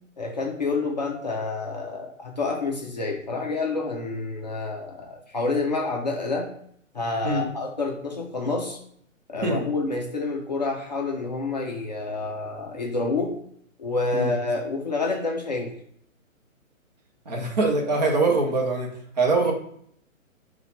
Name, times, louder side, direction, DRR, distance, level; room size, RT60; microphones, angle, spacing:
voice 1, 0.2-6.5 6.9-8.8 9.3-13.4 13.8-15.7 19.4-19.5, left 3 dB, 35° left, 0 dB, 0.5 m, -28 dB
voice 2, 17.3-19.5, right 3 dB, 30° right, 1 dB, 0.8 m, -23 dB
4.0 x 2.3 x 4.0 m, 0.67 s
hypercardioid pair, 150°, 41 cm